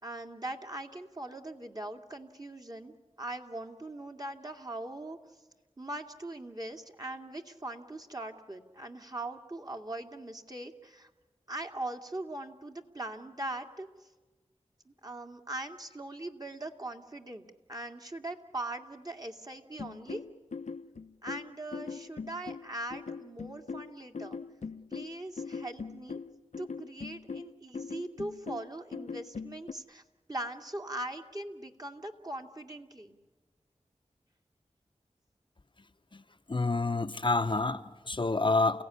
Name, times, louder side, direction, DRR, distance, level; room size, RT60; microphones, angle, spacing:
voice 1, 0.0-5.2 5.8-11.1 11.5-14.1 14.9-17.4 17.7-20.2 21.2-24.4 24.9-26.2 26.6-30.0 30.3-33.2, right 1 dB, 35° right, 2.3 m, -41 dB
sound 1, 19.8-29.7, left 5 dB, 70° left, 0.8 m, -41 dB
voice 2, 36.5-38.8, left 3 dB, 40° left, 0.9 m, -28 dB
29.0 x 16.5 x 9.8 m
cardioid pair, 40°, 12 cm